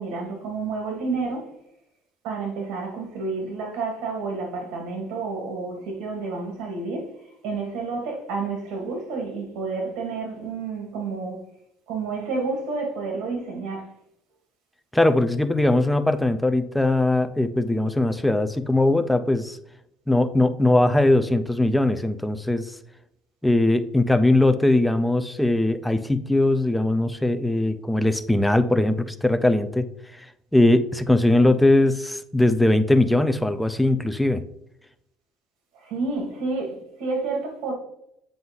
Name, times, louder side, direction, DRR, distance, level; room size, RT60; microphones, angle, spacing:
voice 1, 0.0-1.5 2.2-7.1 7.4-11.4 11.9-13.9 35.7-37.7, right 4 dB, 70° right, 2.2 m, -30 dB
voice 2, 14.9-19.6 20.1-22.7 23.4-29.9 30.1-30.3 30.5-34.4, left 2 dB, 5° left, 0.4 m, -20 dB
7.8 x 2.6 x 5.5 m
cardioid pair, 160°, 0 cm